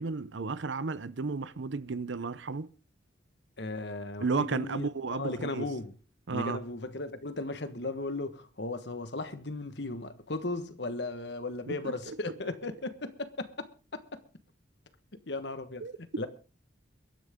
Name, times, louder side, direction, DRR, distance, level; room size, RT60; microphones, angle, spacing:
voice 1, 0.0-2.7 4.2-5.7 6.3-6.6 11.7-12.3 15.8-16.0, right 4 dB, 75° right, 0.7 m, -33 dB
voice 2, 3.6-5.9 6.3-14.2 15.3-16.3, left 2 dB, 60° left, 1.4 m, -36 dB
23.0 x 10.5 x 3.6 m
head